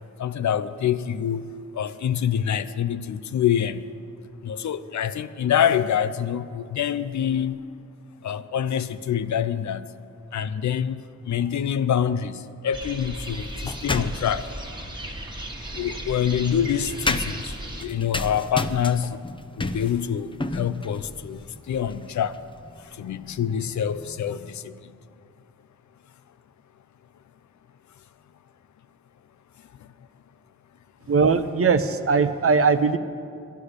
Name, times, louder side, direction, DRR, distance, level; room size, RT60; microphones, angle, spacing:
voice 1, 0.2-1.5 1.7-3.8 4.4-7.6 8.2-9.9 10.3-14.5 15.7-19.2 19.6-22.4 23.0-24.7, left 9 dB, 75° left, 0.5 m, -26 dB
Birds In olive grove enhanced, 12.7-17.8, right 1 dB, 15° right, 1.6 m, -36 dB
sound 1, 13.3-14.5 15.6-24.3, left 2 dB, 20° left, 0.6 m, -34 dB
voice 2, 31.1-33.0, right 5 dB, 50° right, 0.7 m, -20 dB
11.5 x 10.0 x 6.5 m
cardioid pair, 60°, 29 cm